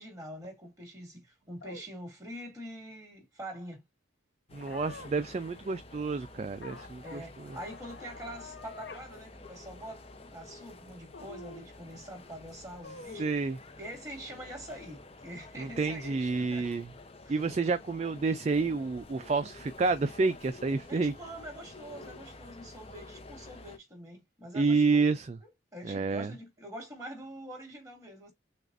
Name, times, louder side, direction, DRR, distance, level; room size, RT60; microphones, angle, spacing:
voice 1, 0.0-3.8 7.0-13.5 13.8-16.7 17.2-17.4 20.9-25.1 25.4-28.3, equal, 20° right, 2.3 m, -45 dB
sound 1, 1.6-1.8 4.6-5.2 6.6-7.2 7.5-9.1 9.4-9.5 11.1-11.7 12.8-13.3, left 3 dB, 65° left, 0.8 m, -46 dB
sound 2, 4.5-23.8, left 2 dB, 30° left, 0.8 m, -50 dB
voice 2, 4.5-7.2 13.2-13.6 15.6-16.9 17.3-21.1 24.5-25.3 25.8-26.3, right 4 dB, 35° right, 0.3 m, -29 dB
6.5 x 2.4 x 2.5 m
head